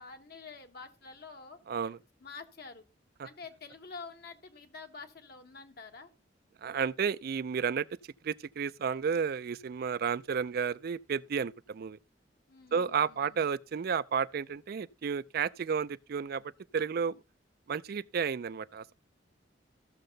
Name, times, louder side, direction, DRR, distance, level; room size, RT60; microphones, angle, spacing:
voice 1, 0.0-1.6 2.2-2.8 3.2-6.1 12.5-13.4, left 4 dB, 60° left, 1.4 m, -48 dB
voice 2, 1.7-2.0 3.2-3.3 6.6-7.9 8.2-12.0 12.7-16.4 16.7-17.2 17.7-18.9, right 6 dB, 55° right, 0.4 m, -32 dB
14.5 x 6.7 x 3.9 m
head